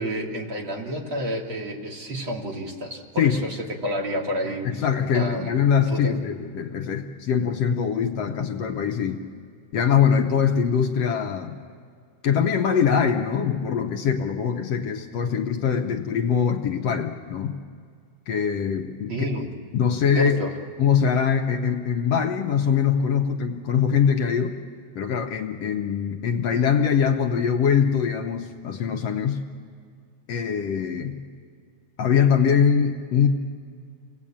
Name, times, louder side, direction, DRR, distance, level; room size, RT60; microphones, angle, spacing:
voice 1, 0.0-4.9 5.1-6.1 19.1-19.5 20.1-20.5, equal, 40° right, 0 dB, 3.2 m, -30 dB
voice 2, 4.4-9.2 9.7-11.6 12.2-17.6 18.3-19.3 19.7-20.4 20.8-24.6 25.0-29.4 30.3-31.2 32.0-33.3, left 7 dB, 65° left, 4 dB, 2.0 m, -23 dB
29.0 x 20.0 x 8.8 m, 2.2 s
omnidirectional pair, 3.4 m